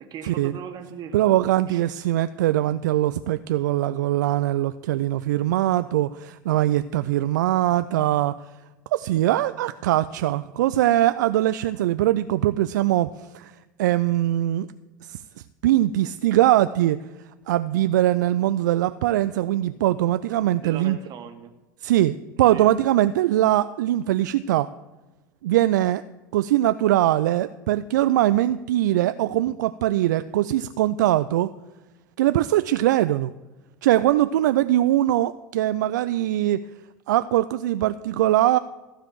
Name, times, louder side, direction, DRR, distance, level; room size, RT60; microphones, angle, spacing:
voice 1, 0.0-1.3 1.7-1.8 20.6-21.5 22.5-22.7, right 7 dB, 45° right, 7 dB, 1.6 m, -38 dB
voice 2, 1.1-8.3 8.9-14.7 15.0-15.2 15.6-17.0 17.5-21.0 21.8-24.7 25.4-26.0 26.3-31.5 32.2-33.3 33.8-36.6 37.1-38.6, right 14 dB, 70° right, 13 dB, 0.4 m, -21 dB
15.0 x 5.0 x 7.4 m, 1.1 s
hypercardioid pair, 75°, 10 cm